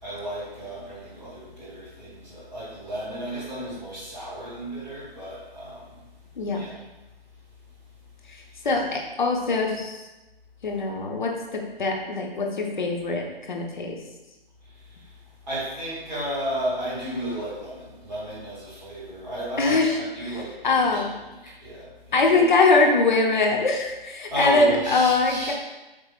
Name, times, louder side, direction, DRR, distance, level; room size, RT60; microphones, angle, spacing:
voice 1, 0.0-6.0 6.5-6.8 8.5-8.6 14.7-15.1 15.5-21.1 21.4-22.4 24.3-25.5, equal, 10° right, -10 dB, 1.2 m, -33 dB
voice 2, 8.6-10.0 10.6-14.0 19.6-19.9 20.2-20.3 20.6-21.1 21.4-21.5 22.1-25.5, left 3 dB, 50° left, 0 dB, 1.1 m, -22 dB
8.3 x 4.8 x 2.5 m, 1.1 s
figure-of-eight pair, 150°, 30 cm